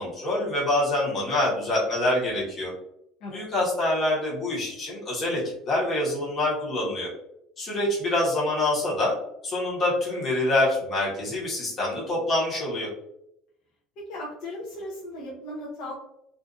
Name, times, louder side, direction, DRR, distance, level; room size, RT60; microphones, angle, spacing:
voice 1, 0.0-2.7 3.3-7.1 7.6-9.1 9.4-12.9, left 1 dB, 25° left, -5 dB, 1.0 m, -26 dB
voice 2, 14.0-15.9, left 1 dB, 60° left, -3 dB, 0.6 m, -37 dB
2.5 x 2.4 x 2.4 m, 0.79 s
cardioid pair, 155°, 0 cm